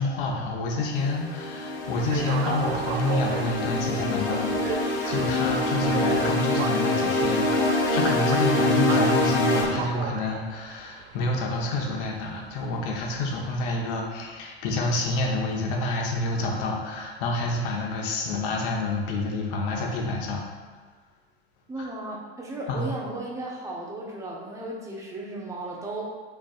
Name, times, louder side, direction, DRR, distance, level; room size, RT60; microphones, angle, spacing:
voice 1, 0.0-20.4 21.8-21.9 22.7-22.9, left 2 dB, 55° left, 0 dB, 1.0 m, -28 dB
sound 1, 0.9-9.6, left 2 dB, 40° left, 1.3 m, -25 dB
sound 2, 1.8-13.7, right 7 dB, 65° right, 0.5 m, -36 dB
voice 2, 21.7-26.0, right 2 dB, 10° right, -3 dB, 0.9 m, -35 dB
6.2 x 3.4 x 2.4 m, 1.4 s
hypercardioid pair, 90°, 32 cm